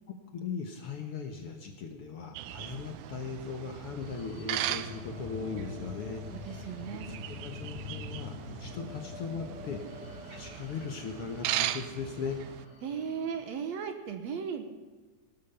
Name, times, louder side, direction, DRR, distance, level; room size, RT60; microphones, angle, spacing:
voice 1, 0.1-10.0 10.3-12.4, left 5 dB, 60° left, 4 dB, 1.8 m, -39 dB
sound 1, 2.4-12.7, right 13 dB, 85° right, 2.1 m, -39 dB
sound 2, 3.7-13.5, left 4 dB, 35° left, 1.9 m, -45 dB
voice 2, 6.3-7.1 12.8-14.6, right 7 dB, 65° right, 7 dB, 2.2 m, -36 dB
17.5 x 11.5 x 5.7 m, 1.3 s
omnidirectional pair, 3.5 m